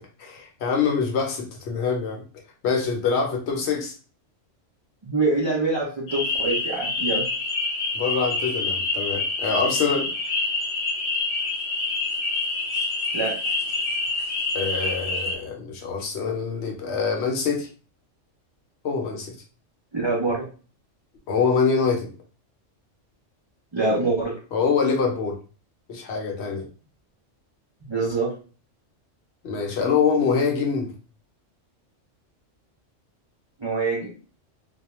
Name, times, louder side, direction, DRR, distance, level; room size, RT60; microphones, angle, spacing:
voice 1, 0.2-2.2 2.6-3.9 7.9-10.1 14.5-17.7 18.8-19.4 21.3-22.1 24.5-25.4 25.9-26.7 29.4-30.9, left 5 dB, 65° left, 1 dB, 0.9 m, -24 dB
voice 2, 5.0-7.3 13.1-13.4 19.9-20.5 23.7-24.4 27.9-28.3 33.6-34.1, right 3 dB, 45° right, -4 dB, 0.3 m, -25 dB
sound 1, 6.1-15.4, left 3 dB, 85° left, 1.0 m, -27 dB
2.2 x 2.1 x 2.9 m, 0.37 s
omnidirectional pair, 1.3 m